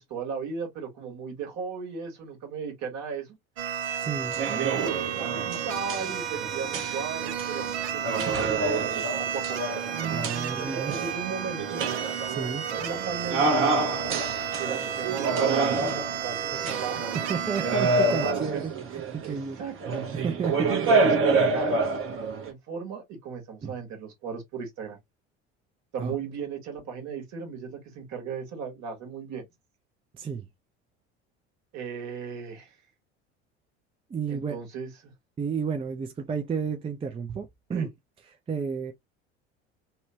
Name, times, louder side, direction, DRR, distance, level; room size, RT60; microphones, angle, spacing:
voice 1, 0.0-3.4 4.5-9.6 10.4-11.8 12.7-13.5 14.6-17.1 18.0-18.6 19.2-20.0 20.7-21.8 22.4-25.0 25.9-29.5 31.7-32.7 34.3-35.1 37.7-37.9, right 5 dB, 55° right, 1.5 m, -37 dB
sound 1, 3.6-18.3, right 8 dB, 75° right, 0.6 m, -32 dB
voice 2, 4.0-4.4 10.1-11.1 12.3-12.7 17.1-19.6 20.1-20.7 23.6-23.7 26.0-26.1 30.1-30.5 34.1-34.6 35.4-37.9 38.5-38.9, right 6 dB, 15° right, 0.4 m, -32 dB
sound 2, 4.2-22.5, right 3 dB, 40° right, 1.0 m, -28 dB
2.8 x 2.1 x 2.8 m
hypercardioid pair, 75°, 34 cm